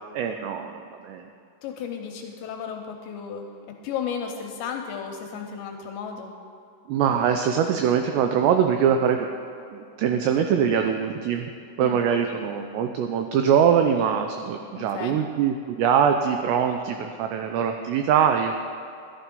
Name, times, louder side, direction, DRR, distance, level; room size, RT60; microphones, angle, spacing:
voice 1, 0.1-1.2 6.9-9.3 9.7-11.5 11.8-18.5, right 8 dB, 90° right, 5 dB, 2.4 m, -23 dB
voice 2, 1.6-6.3 11.8-12.0 14.8-15.2, left 7 dB, 80° left, 3 dB, 2.7 m, -34 dB
12.5 x 11.5 x 5.3 m, 2.6 s
omnidirectional pair, 5.7 m